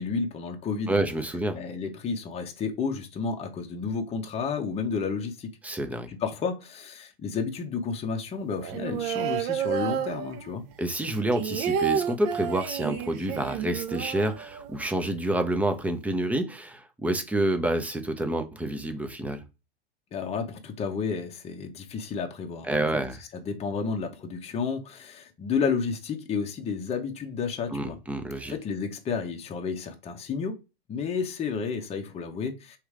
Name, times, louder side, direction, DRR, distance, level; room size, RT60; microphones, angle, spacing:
voice 1, 0.0-1.0 1.5-5.5 6.1-10.7 20.1-22.9 23.3-28.0 28.5-30.6 30.9-32.8, left 5 dB, 20° left, 0.9 m, -31 dB
voice 2, 0.9-1.6 5.6-6.1 10.8-19.4 22.7-23.2 27.7-28.5, right 1 dB, 5° right, 0.6 m, -28 dB
sound 1, 8.6-10.7 11.0-15.0 15.3-15.4 15.6-16.1, right 8 dB, 40° right, 0.7 m, -30 dB
3.2 x 3.1 x 4.8 m
hypercardioid pair, 100°, 30 cm